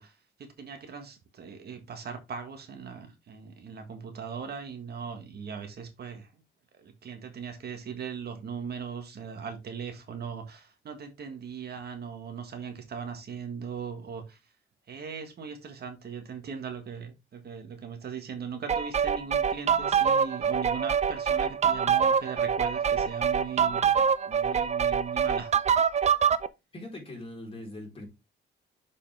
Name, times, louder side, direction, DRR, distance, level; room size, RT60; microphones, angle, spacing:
voice 1, 0.0-6.4 6.7-14.4 14.9-23.9 24.3-25.5, right 6 dB, 60° right, 1.7 m, -39 dB
sound 1, 18.7-26.5, right 7 dB, 35° right, 0.5 m, -25 dB
voice 2, 26.7-28.1, left 1 dB, 30° left, 4.0 m, -41 dB
6.9 x 5.2 x 3.5 m
cardioid pair, 115°, 19 cm